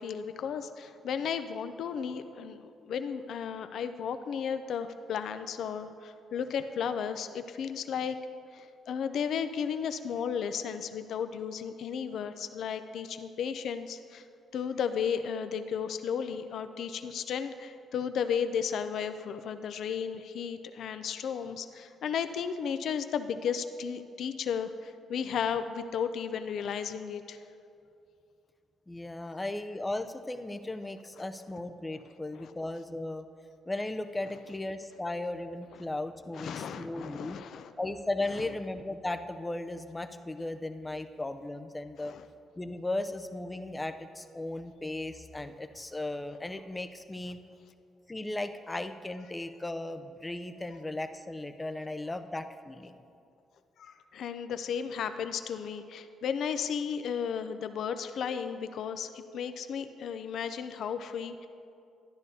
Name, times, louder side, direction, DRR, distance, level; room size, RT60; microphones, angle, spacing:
voice 1, 0.0-8.2 8.5-14.2 14.5-27.4 32.4-32.5 36.3-37.7 42.0-42.2 53.8-61.5, left 7 dB, 70° left, 10 dB, 0.4 m, -34 dB
voice 2, 28.9-33.3 33.7-37.4 37.8-42.1 42.6-47.4 48.1-53.0, left 2 dB, 15° left, 8 dB, 0.5 m, -36 dB
12.0 x 10.5 x 2.7 m, 2.5 s
cardioid pair, 90°, 0 cm